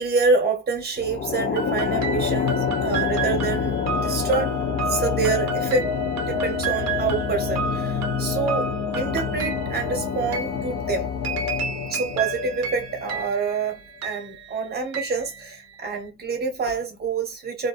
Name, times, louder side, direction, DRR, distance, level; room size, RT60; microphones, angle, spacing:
voice 1, 0.0-4.5 4.9-5.9 6.2-11.1 11.9-17.7, right 4 dB, 25° right, 1.0 m, -27 dB
sound 1, 1.0-13.5, left 6 dB, 25° left, 0.5 m, -27 dB
sound 2, 1.6-16.0, right 6 dB, 40° right, 0.7 m, -33 dB
2.4 x 2.1 x 2.4 m
cardioid pair, 120°, 41 cm